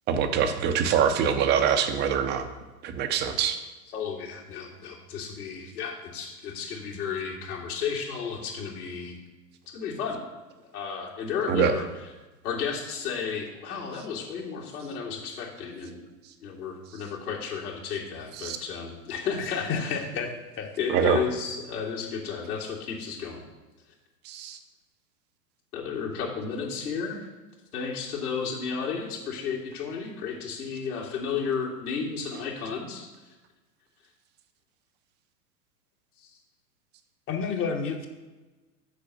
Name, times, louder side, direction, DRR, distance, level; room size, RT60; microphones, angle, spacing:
voice 1, 0.1-2.5 2.8-3.6 11.5-11.7 18.4-18.6 20.9-21.2 24.3-24.6, right 7 dB, 20° right, 8 dB, 0.6 m, -24 dB
voice 2, 3.9-9.2 9.7-10.2 10.6-11.9 12.4-16.0 16.4-20.0 20.8-23.4 25.7-27.3 27.7-33.3 36.2-36.4, left 6 dB, 60° left, -2 dB, 2.4 m, -33 dB
voice 3, 19.4-20.7 37.3-38.1, left 5 dB, 25° left, 5 dB, 1.1 m, -30 dB
6.8 x 5.0 x 6.9 m, 1.2 s
figure-of-eight pair, 105°, 49 cm